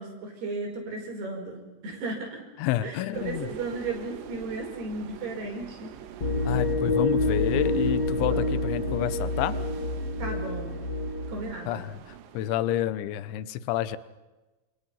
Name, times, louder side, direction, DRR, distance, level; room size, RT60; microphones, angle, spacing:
voice 1, 0.0-2.5 2.8-5.9 8.2-8.6 10.2-10.8 11.3-11.8, right 3 dB, 60° right, 2 dB, 6.9 m, -35 dB
voice 2, 2.6-3.5 6.5-9.6 11.7-14.0, left 13 dB, 80° left, 14 dB, 3.4 m, -29 dB
sound 1, 3.1-12.7, right 10 dB, 75° right, 3.7 m, -44 dB
sound 2, 6.2-11.5, left 2 dB, 40° left, 1.5 m, -27 dB
29.0 x 28.0 x 5.7 m, 1.1 s
omnidirectional pair, 5.4 m